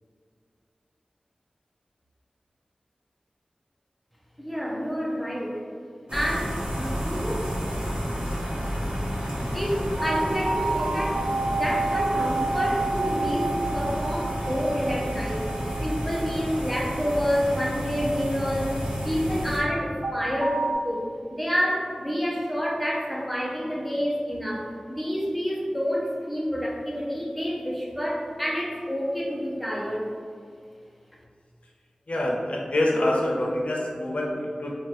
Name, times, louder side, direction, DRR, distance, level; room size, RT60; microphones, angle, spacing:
voice 1, 4.4-5.5 6.1-7.5 9.5-15.4 15.8-18.8 19.0-21.1 21.3-30.1, equal, ahead, -3 dB, 0.7 m, -28 dB
sound 1, 6.1-19.6, equal, 50° right, 1.1 m, -31 dB
sound 2, 10.0-19.1 20.0-20.7, right 2 dB, 70° right, 0.4 m, -30 dB
voice 2, 32.1-34.8, left 1 dB, 70° left, -2 dB, 0.6 m, -26 dB
4.1 x 2.4 x 3.2 m, 2.1 s
wide cardioid pair, 50°, 2 cm